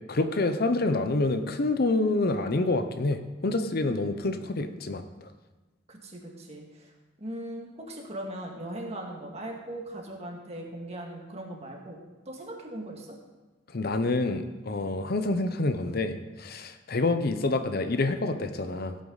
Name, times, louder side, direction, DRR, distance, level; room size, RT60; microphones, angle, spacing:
voice 1, 0.1-5.0 13.7-19.0, left 2 dB, 55° left, 9 dB, 0.7 m, -27 dB
voice 2, 5.9-6.9 7.2-12.0 12.3-13.2, right 1 dB, 35° right, 0 dB, 2.0 m, -39 dB
16.0 x 8.6 x 4.0 m, 1.2 s
head